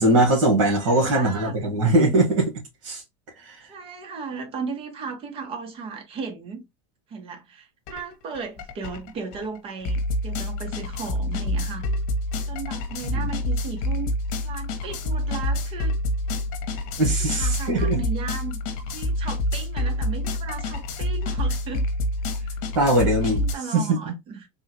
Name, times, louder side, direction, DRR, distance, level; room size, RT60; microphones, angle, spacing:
voice 1, 0.0-2.5 2.8-3.0 3.4-3.6 17.0-18.0 22.7-23.4 23.7-24.1, right 1 dB, 85° right, 1.4 m, -21 dB
voice 2, 0.8-1.8 3.7-6.6 7.1-11.9 12.5-14.1 14.4-15.9 17.3-18.6 18.9-21.9 22.2-22.6 23.0-24.5, right 5 dB, 35° right, 1.0 m, -36 dB
sound 1, 7.9-8.0 8.3-23.5, left 1 dB, 55° left, 1.0 m, -27 dB
3.6 x 2.3 x 2.8 m
supercardioid pair, 145°, 17 cm